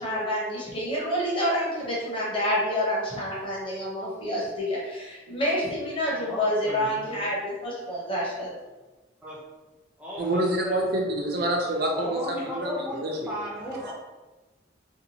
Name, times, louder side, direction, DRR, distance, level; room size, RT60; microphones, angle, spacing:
voice 1, 0.0-8.5, equal, 25° left, -6 dB, 0.8 m, -28 dB
voice 2, 6.1-7.3 9.2-9.4 10.0-10.8 11.9-13.9, equal, 5° right, -6 dB, 0.5 m, -35 dB
voice 3, 10.2-13.3 13.8-13.9, right 1 dB, 50° right, 0 dB, 0.5 m, -27 dB
2.8 x 2.2 x 2.7 m, 1.2 s
head